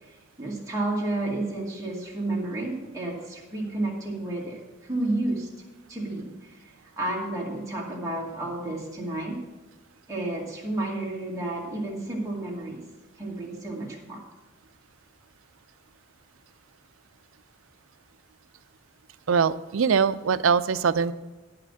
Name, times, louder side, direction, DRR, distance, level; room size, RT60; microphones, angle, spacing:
voice 1, 0.0-5.5 5.9-9.4 10.1-12.8 13.2-14.2, right 2 dB, 15° right, -4 dB, 2.3 m, -31 dB
voice 2, 19.3-21.1, right 6 dB, 75° right, 14 dB, 0.5 m, -22 dB
11.0 x 5.8 x 7.6 m, 1.2 s
head